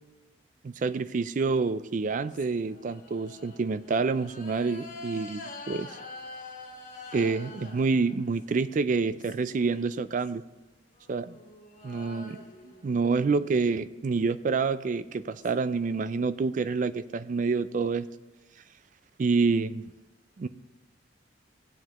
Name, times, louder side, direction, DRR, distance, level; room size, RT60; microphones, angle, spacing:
voice 1, 0.6-6.0 7.1-10.4 11.1-11.4 11.8-12.4 12.6-18.1 19.2-19.9 20.4-20.5, right 4 dB, 45° right, 14 dB, 0.3 m, -28 dB
sound 1, 2.3-8.6 8.9-10.3 10.9-13.5 14.8-14.9 15.1-16.1, left 3 dB, 40° left, 1.5 m, -47 dB
15.5 x 9.4 x 3.0 m, 1.1 s
head